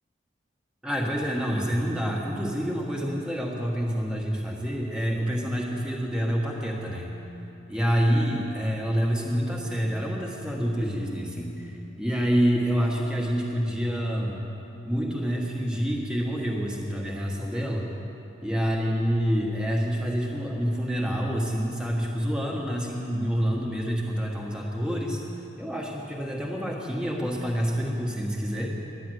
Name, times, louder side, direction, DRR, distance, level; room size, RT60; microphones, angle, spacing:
voice 1, 0.8-7.1 7.7-14.4 14.8-17.9 18.4-25.2 25.6-28.7, equal, 5° right, -2 dB, 1.3 m, -27 dB
10.5 x 10.0 x 7.7 m, 2.9 s
head